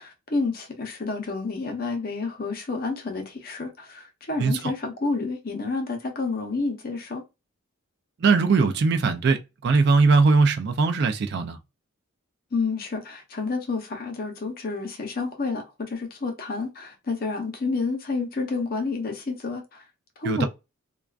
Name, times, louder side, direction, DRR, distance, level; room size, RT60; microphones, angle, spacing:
voice 1, 0.0-7.2 12.5-19.8 20.2-20.5, left 3 dB, 45° left, 0.6 m, -29 dB
voice 2, 4.4-4.7 8.2-11.6 20.2-20.5, right 4 dB, 50° right, 0.3 m, -20 dB
2.3 x 2.3 x 2.3 m
head